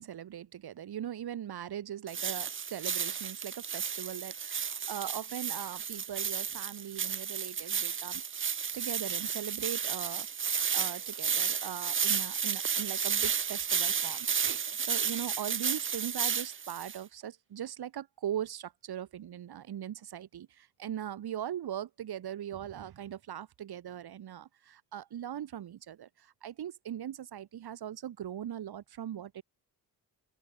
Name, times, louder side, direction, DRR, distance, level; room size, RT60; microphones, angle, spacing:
voice 1, 0.0-8.2 8.7-29.4, right 10 dB, 70° right, 6.1 m, -40 dB
sound 1, 2.1-17.0, right 7 dB, 30° right, 0.8 m, -32 dB
open air
cardioid pair, 115°, 40 cm